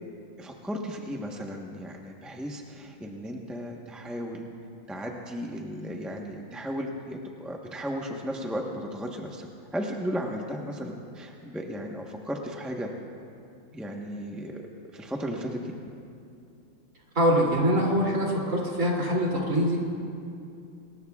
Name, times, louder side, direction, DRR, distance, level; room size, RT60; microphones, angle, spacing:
voice 1, 0.4-4.5 4.9-9.5 9.7-12.9 13.7-14.6 14.9-15.7, equal, ahead, 0 dB, 0.5 m, -35 dB
voice 2, 17.1-19.8, equal, 40° right, -3 dB, 3.3 m, -24 dB
27.0 x 20.5 x 2.4 m, 2.5 s
omnidirectional pair, 2.1 m